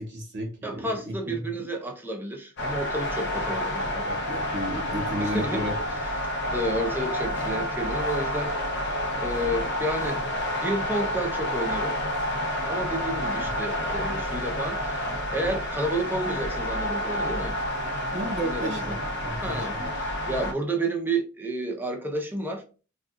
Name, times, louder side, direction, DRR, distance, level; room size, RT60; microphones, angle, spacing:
voice 1, 0.0-1.7 4.0-5.7 18.1-19.9, right 1 dB, 55° right, 0.8 m, -33 dB
voice 2, 0.6-4.1 5.2-5.6 5.9-8.8 9.2-10.2 10.6-11.9 12.7-17.6 18.4-19.0 19.4-22.6, right 1 dB, 10° right, 0.6 m, -31 dB
sound 1, 2.6-20.5, left 1 dB, 55° left, 0.7 m, -29 dB
4.0 x 2.4 x 2.3 m
head